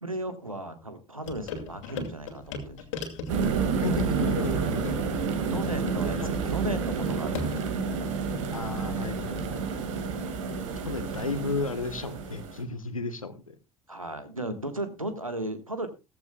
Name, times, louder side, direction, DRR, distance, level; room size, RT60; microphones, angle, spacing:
voice 1, 0.0-2.8 5.5-7.7 13.9-15.9, right 1 dB, 90° right, 10 dB, 1.4 m, -35 dB
sound 1, 1.2-7.8, left 4 dB, 65° left, 2.3 m, -39 dB
sound 2, 3.3-12.6, right 5 dB, 65° right, 2.1 m, -29 dB
voice 2, 3.8-5.2 6.2-6.3 8.5-9.9 10.8-13.6, left 3 dB, 85° left, 13 dB, 1.1 m, -33 dB
15.5 x 14.5 x 2.3 m, 0.27 s
figure-of-eight pair, 65°, 17 cm